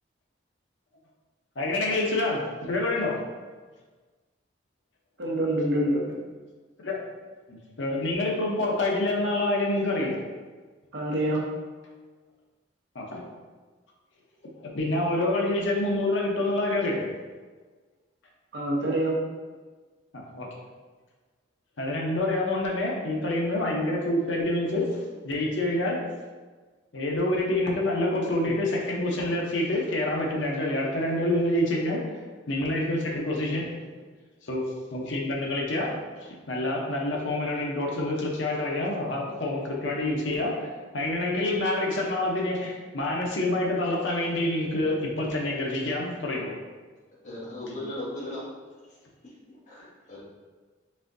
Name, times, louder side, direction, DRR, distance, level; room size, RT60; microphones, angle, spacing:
voice 1, 1.6-3.2 6.8-7.0 7.5-10.2 12.9-13.3 14.6-17.1 20.1-20.5 21.8-25.0 25.3-26.0 26.9-33.8 34.4-34.6 34.9-46.6, left 1 dB, 80° left, -2 dB, 0.8 m, -27 dB
voice 2, 5.2-6.2 10.9-11.5 18.5-19.2, right 1 dB, 65° right, -2 dB, 0.8 m, -26 dB
voice 3, 47.2-48.5 49.7-50.2, left 1 dB, 40° left, -7 dB, 1.2 m, -36 dB
4.2 x 3.5 x 2.6 m, 1.4 s
head